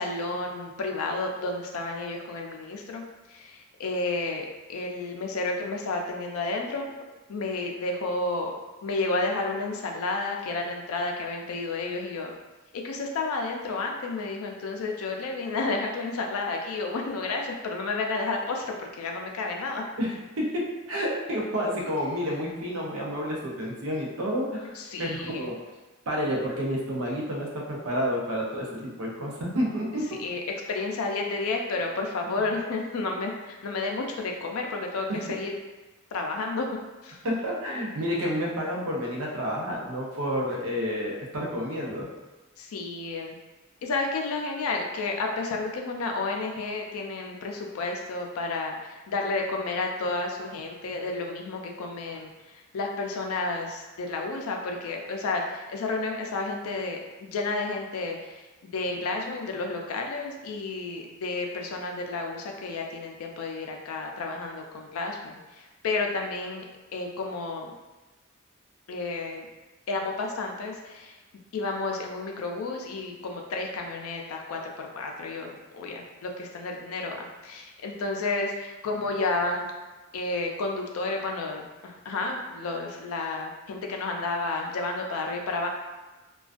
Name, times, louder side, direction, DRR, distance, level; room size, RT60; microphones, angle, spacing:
voice 1, 0.0-3.0 3.3-6.9 7.3-8.6 8.8-12.4 12.8-19.8 24.8-25.5 29.2-29.3 30.2-30.4 30.7-35.5 36.1-36.7 37.0-37.2 42.6-43.4 43.8-58.4 58.7-66.6 66.9-67.7 68.9-69.5 69.9-71.2 71.5-79.7 80.1-85.7, left 3 dB, 75° left, 1 dB, 0.4 m, -31 dB
voice 2, 20.0-25.5 26.1-30.2 32.2-32.5 35.1-35.2 37.2-42.1, equal, 80° right, -2 dB, 0.6 m, -30 dB
2.3 x 2.2 x 2.4 m, 1.2 s
head